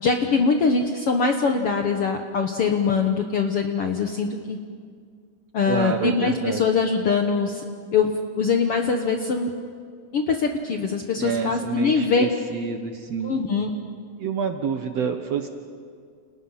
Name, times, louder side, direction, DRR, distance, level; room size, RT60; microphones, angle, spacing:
voice 1, 0.0-4.6 5.5-7.6 7.9-8.1 8.4-9.5 10.1-12.2 13.2-13.7, left 5 dB, 60° left, 4 dB, 1.5 m, -22 dB
voice 2, 5.7-6.6 11.2-13.4 14.2-15.5, right 6 dB, 60° right, 6 dB, 1.9 m, -28 dB
29.5 x 29.5 x 5.7 m, 2.1 s
omnidirectional pair, 4.0 m